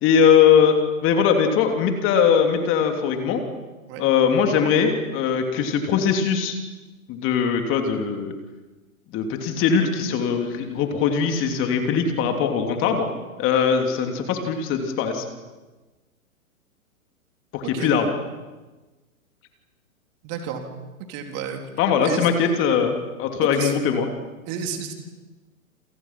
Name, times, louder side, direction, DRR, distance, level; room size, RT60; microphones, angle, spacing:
voice 1, 0.0-3.4 4.0-6.6 7.1-8.3 9.1-13.1 13.4-15.2 17.5-18.1 21.8-22.9 23.2-24.0, left 7 dB, 30° left, 4 dB, 3.2 m, -20 dB
voice 2, 20.2-20.6 21.1-21.6 22.0-22.3 23.5-23.7 24.5-24.9, right 7 dB, 35° right, 4 dB, 3.9 m, -31 dB
28.5 x 27.0 x 6.1 m, 1.2 s
hypercardioid pair, 125°, 43 cm